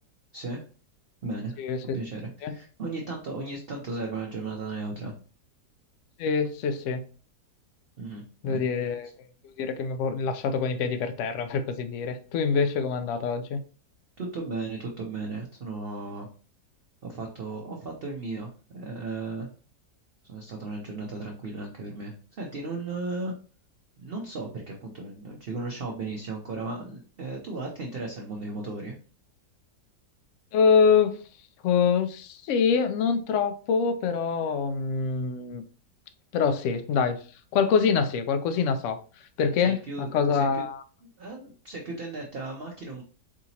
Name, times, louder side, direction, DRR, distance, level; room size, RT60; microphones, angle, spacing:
voice 1, 0.3-0.6 1.2-1.6 1.9-5.1 8.0-8.7 14.2-16.3 17.0-19.5 20.2-23.3 24.0-29.0 39.6-40.6 41.2-43.0, right 3 dB, 60° right, 0.6 m, -35 dB
voice 2, 1.6-2.0 2.4-2.5 6.2-7.0 8.4-9.1 9.4-13.6 30.5-31.2 31.6-35.6 36.3-37.2 37.5-40.8, left 5 dB, 75° left, 0.7 m, -25 dB
4.9 x 2.9 x 2.7 m
omnidirectional pair, 1.8 m